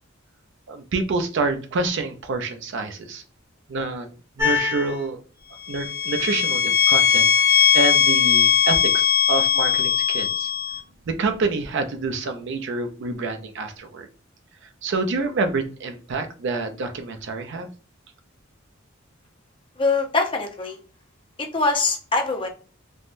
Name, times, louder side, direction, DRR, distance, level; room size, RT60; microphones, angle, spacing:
voice 1, 0.7-3.2 3.7-5.2 5.7-10.5 11.1-14.1 14.8-17.7, right 3 dB, 60° right, 7 dB, 0.4 m, -27 dB
sound 1, 4.4-4.9 5.7-10.8, left 8 dB, 15° right, 0.7 m, -19 dB
voice 2, 19.8-20.8 21.4-22.5, left 3 dB, 25° left, 3 dB, 0.5 m, -23 dB
3.3 x 2.1 x 2.5 m, 0.38 s
head